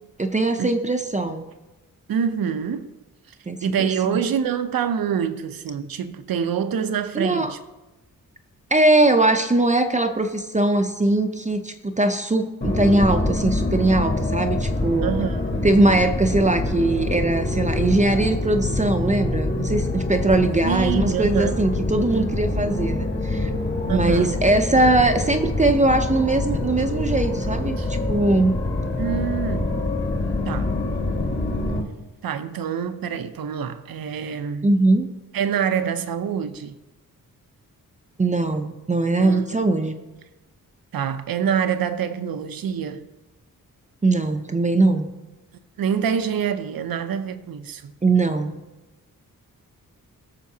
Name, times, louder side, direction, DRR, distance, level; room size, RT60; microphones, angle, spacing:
voice 1, 0.2-1.4 3.5-4.2 7.1-7.5 8.7-15.2 15.6-23.5 23.9-28.6 34.6-35.1 38.2-40.0 44.0-45.1 48.0-48.6, right 2 dB, 20° right, 0.5 m, -21 dB
voice 2, 2.1-2.9 3.6-7.6 15.0-15.7 20.6-21.6 22.1-22.4 23.9-24.4 27.8-27.9 29.0-29.8 30.5-30.7 32.2-34.7 35.3-36.8 39.1-39.7 40.9-43.1 45.8-47.9, right 7 dB, 80° right, 0.7 m, -26 dB
sound 1, 12.6-31.8, left 2 dB, 30° left, 1.2 m, -25 dB
17.5 x 6.7 x 2.8 m
wide cardioid pair, 135°, 35 cm